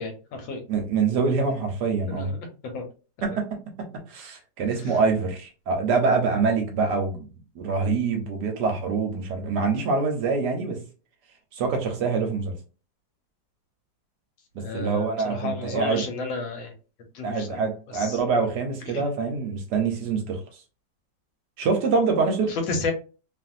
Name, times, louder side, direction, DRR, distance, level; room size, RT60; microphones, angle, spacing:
voice 1, 0.0-0.6 2.1-2.4 2.7-2.8 4.8-4.9 14.6-16.7 17.1-17.6 17.9-18.2 18.9-19.0 22.5-22.9, left 3 dB, 85° left, 5 dB, 1.5 m, -32 dB
voice 2, 0.7-2.3 3.2-3.5 4.1-7.3 7.5-10.8 11.5-12.5 14.5-16.0 17.2-20.4 21.6-22.5, right 4 dB, 70° right, 3 dB, 1.1 m, -25 dB
3.0 x 2.5 x 2.5 m, 0.35 s
omnidirectional pair, 2.1 m